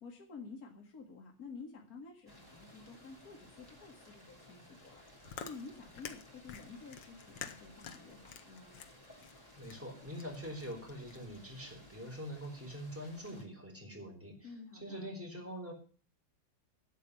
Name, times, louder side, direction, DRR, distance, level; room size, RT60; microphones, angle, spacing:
voice 1, 0.0-8.8 14.4-15.1, left 4 dB, 50° left, 1 dB, 2.4 m, -51 dB
sound 1, 2.3-13.4, left 1 dB, 10° left, 3.0 m, -58 dB
Chewing mastication, 4.9-11.4, left 8 dB, 75° left, 1.7 m, -50 dB
voice 2, 9.6-14.5 14.8-15.7, equal, 5° right, 1 dB, 3.9 m, -44 dB
12.5 x 8.4 x 6.7 m, 0.41 s
omnidirectional pair, 2.1 m